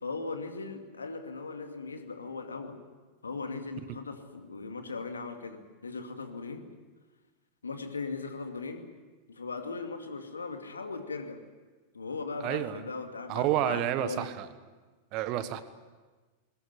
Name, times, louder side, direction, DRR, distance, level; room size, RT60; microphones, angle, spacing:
voice 1, 0.0-2.8 3.2-6.7 7.6-8.9 9.3-11.4 11.9-14.3, left 4 dB, 75° left, 6 dB, 2.3 m, -38 dB
voice 2, 12.4-12.8 13.3-14.5 15.1-15.6, right 12 dB, 40° right, 13 dB, 1.4 m, -29 dB
21.0 x 20.5 x 9.3 m, 1.3 s
figure-of-eight pair, 90°, 0 cm